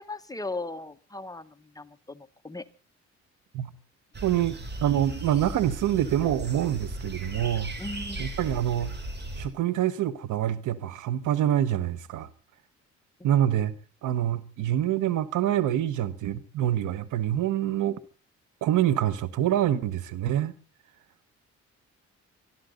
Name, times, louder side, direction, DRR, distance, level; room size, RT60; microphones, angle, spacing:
voice 1, 0.0-2.7 7.8-8.2, left 2 dB, 10° left, 1.0 m, -37 dB
sound 1, 4.1-9.5, right 1 dB, 35° right, 3.5 m, -37 dB
voice 2, 4.2-7.7 8.2-8.9 9.4-12.3 13.2-13.8 14.0-18.0 18.6-20.5, right 11 dB, 80° right, 1.2 m, -26 dB
24.5 x 13.0 x 3.9 m
cardioid pair, 90°, 30 cm